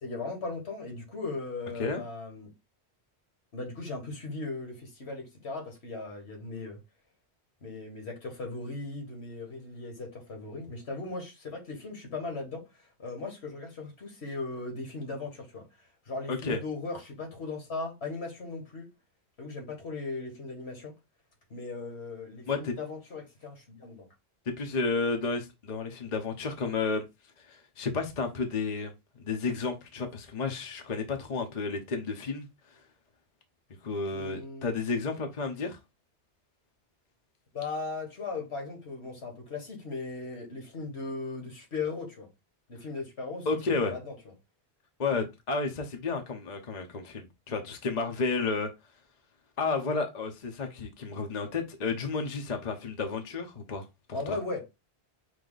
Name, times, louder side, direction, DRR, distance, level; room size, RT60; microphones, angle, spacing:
voice 1, 0.0-2.5 3.5-6.8 7.6-15.7 16.1-18.9 19.4-20.9 21.5-24.1 34.1-34.7 37.5-42.3 42.7-43.5 43.8-44.1 54.1-54.7, left 3 dB, 75° left, 1.7 m, -38 dB
voice 2, 16.3-16.6 22.5-22.7 24.5-27.0 27.4-28.9 29.2-32.5 33.8-35.8 43.5-43.9 45.0-48.7 49.6-53.9 54.3-54.4, left 4 dB, 45° left, 0.8 m, -31 dB
4.8 x 2.7 x 3.8 m
omnidirectional pair, 1.1 m